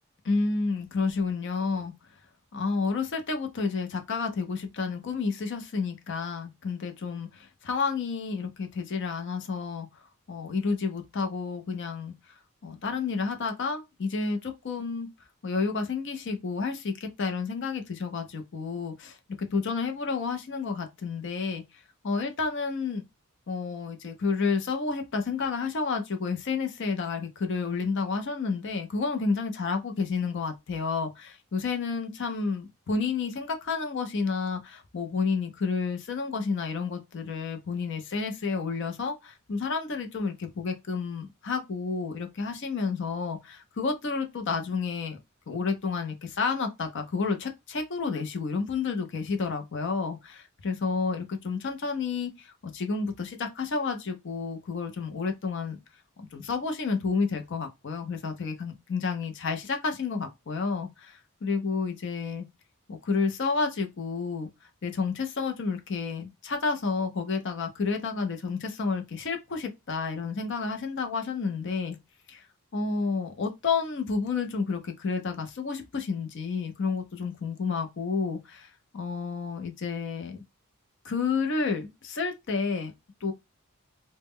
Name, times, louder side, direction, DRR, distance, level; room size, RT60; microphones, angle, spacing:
voice 1, 0.2-1.9 2.5-9.9 10.3-12.1 12.6-15.1 15.4-19.2 19.5-21.6 22.0-23.0 23.5-45.2 45.5-55.8 56.2-62.5 62.9-64.5 64.8-72.0 72.3-72.4 72.7-80.4 81.0-82.9 83.2-83.3, left 4 dB, 55° left, 0.5 m, -30 dB
2.1 x 2.0 x 3.5 m
head